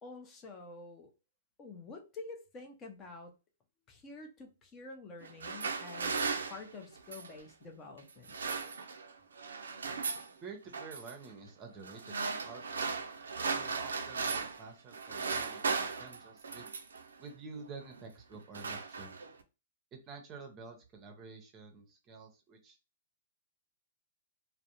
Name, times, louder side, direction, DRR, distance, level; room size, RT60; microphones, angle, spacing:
voice 1, 0.0-1.1 1.6-3.3 3.9-6.2 6.5-8.4, left 3 dB, 25° left, 0.6 m, -48 dB
sound 1, 5.2-7.4 8.1-9.1 9.4-10.3 10.7-11.1 11.8-14.7 14.9-17.0 17.8-18.0 18.3-19.4, right 4 dB, 85° right, 0.4 m, -37 dB
voice 2, 10.4-12.9 13.5-16.7 17.2-19.1 19.9-22.8, right 4 dB, 30° right, 0.6 m, -49 dB
2.5 x 2.0 x 2.8 m
hypercardioid pair, 130°, 0 cm